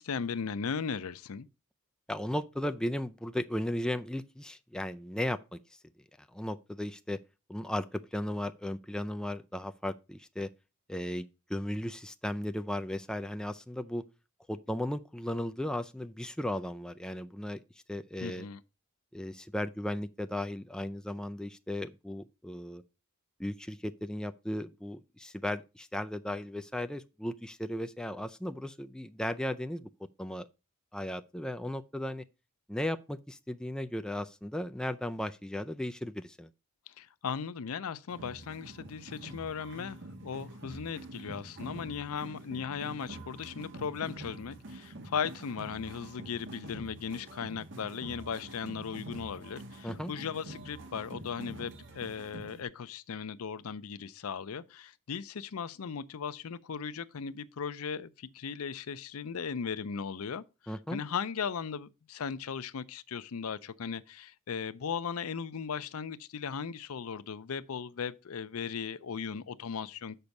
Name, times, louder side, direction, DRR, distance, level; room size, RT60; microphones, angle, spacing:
voice 1, 0.0-1.5 18.2-18.6 37.0-60.4 60.9-70.2, left 6 dB, 70° left, 0.5 m, -37 dB
voice 2, 2.1-5.6 6.3-7.2 7.5-10.5 10.9-14.1 14.5-17.6 17.9-18.5 19.1-22.8 23.4-29.9 30.2-30.5 30.9-32.2 32.7-36.5 49.8-50.1 60.7-61.0, left 1 dB, 5° left, 0.3 m, -36 dB
sound 1, 38.1-52.6, right 1 dB, 60° right, 1.4 m, -46 dB
6.7 x 5.3 x 5.8 m
head